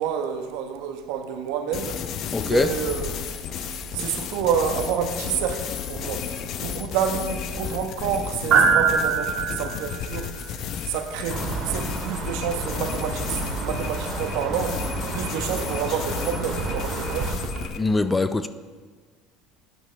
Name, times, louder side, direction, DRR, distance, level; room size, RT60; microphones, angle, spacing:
voice 1, 0.0-2.0 2.4-3.1 3.9-10.3 10.8-14.8 15.1-17.5, right 8 dB, 75° right, 6 dB, 1.1 m, -29 dB
sound 1, 1.7-17.8, left 8 dB, 50° left, 0.7 m, -33 dB
voice 2, 2.3-2.7 17.8-18.5, left 3 dB, 15° left, 12 dB, 0.4 m, -22 dB
sound 2, 2.5-17.7, right 6 dB, 55° right, 1.8 m, -29 dB
sound 3, 11.3-17.4, right 3 dB, 35° right, 2.1 m, -31 dB
13.0 x 9.2 x 3.3 m, 1.5 s
supercardioid pair, 120°, 0 cm